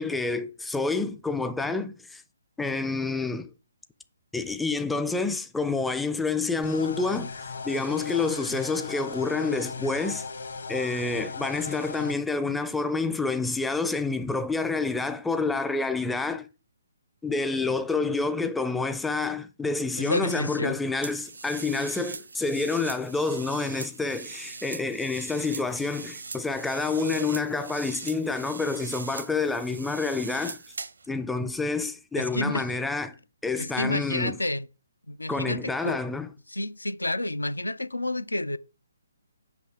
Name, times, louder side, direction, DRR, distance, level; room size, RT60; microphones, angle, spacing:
voice 1, 0.0-2.2 2.6-3.5 4.3-7.3 7.6-10.3 10.7-16.5 17.2-30.6 31.1-33.2 33.4-34.4 35.3-36.3, left 3 dB, 5° left, 0.5 m, -28 dB
sound 1, 6.6-12.1, left 4 dB, 60° left, 1.2 m, -37 dB
voice 2, 20.0-20.8 32.2-32.6 33.5-34.7 35.1-36.0 36.5-38.6, left 1 dB, 80° left, 0.5 m, -30 dB
sound 2, 21.0-31.1, right 4 dB, 70° right, 0.8 m, -40 dB
8.0 x 5.7 x 3.5 m
figure-of-eight pair, 135°, 0 cm